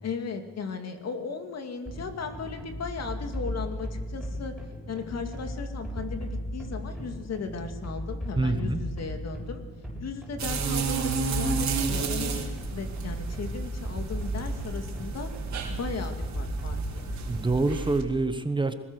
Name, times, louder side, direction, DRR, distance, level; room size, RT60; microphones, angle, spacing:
voice 1, 0.0-4.6 4.9-9.6 10.0-15.3 15.7-17.4, left 5 dB, 55° left, 6 dB, 2.6 m, -36 dB
sound 1, 1.9-17.8, equal, 5° left, 7.6 m, -36 dB
voice 2, 8.4-8.8 17.3-18.7, right 2 dB, 15° right, 9 dB, 1.2 m, -26 dB
sound 2, 10.4-18.0, right 5 dB, 65° right, 4.1 m, -32 dB
21.5 x 19.0 x 6.5 m, 1.4 s
cardioid pair, 90°, 30 cm